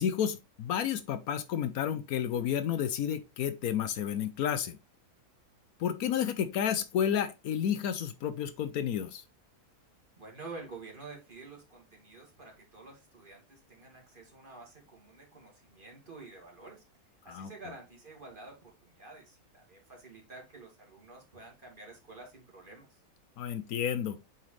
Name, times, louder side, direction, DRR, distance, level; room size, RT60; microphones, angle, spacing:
voice 1, 0.0-4.8 5.8-9.2 17.3-17.5 23.4-24.2, left 9 dB, 75° left, 1.1 m, -31 dB
voice 2, 10.2-16.8 17.2-23.0, right 3 dB, 35° right, 2.3 m, -49 dB
8.8 x 4.2 x 3.1 m
omnidirectional pair, 1.6 m